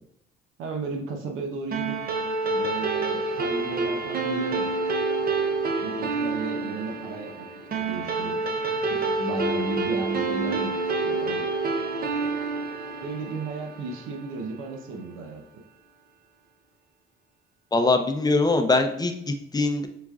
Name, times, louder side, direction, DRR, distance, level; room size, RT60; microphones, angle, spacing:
voice 1, 0.6-2.0 2.5-4.8 5.8-7.5 7.7-8.4 8.7-10.7 11.0-11.4 13.0-15.4, right 2 dB, 90° right, 3 dB, 0.8 m, -34 dB
sound 1, 1.7-14.5, right 3 dB, 50° right, 0.7 m, -28 dB
voice 2, 17.7-19.9, left 3 dB, 20° left, 6 dB, 0.6 m, -22 dB
4.9 x 3.6 x 2.4 m, 0.75 s
cardioid pair, 90°, 20 cm